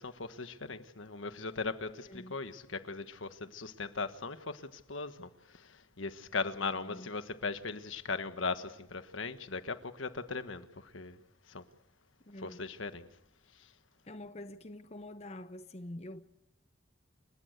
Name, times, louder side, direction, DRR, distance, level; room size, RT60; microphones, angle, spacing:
voice 1, 0.0-11.2 11.5-11.6 12.4-13.1 13.6-13.7, left 4 dB, 90° left, 1.4 m, -39 dB
voice 2, 2.0-2.4 6.8-7.1 12.2-12.7 14.1-16.2, left 1 dB, 35° left, 0.8 m, -46 dB
29.5 x 15.0 x 8.0 m
head